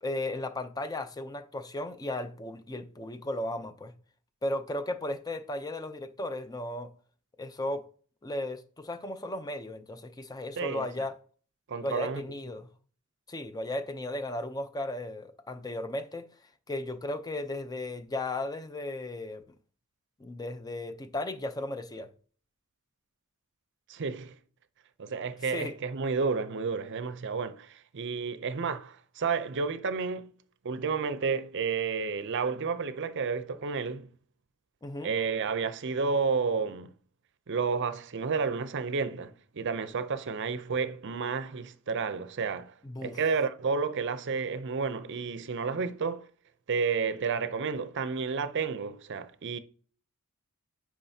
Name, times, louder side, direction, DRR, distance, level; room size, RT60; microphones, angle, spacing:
voice 1, 0.0-3.9 4.4-6.9 7.4-7.9 8.2-11.2 11.8-12.7 13.3-16.3 16.7-19.4 20.2-22.1 25.5-25.7 34.8-35.1 42.8-43.2, left 1 dB, 20° left, 0.5 m, -35 dB
voice 2, 10.6-11.1 11.7-12.2 23.9-24.3 25.0-30.3 30.6-34.1 35.0-36.9 37.5-42.7 43.0-46.3 46.7-49.6, right 5 dB, 55° right, 0.6 m, -31 dB
9.0 x 4.8 x 2.8 m
head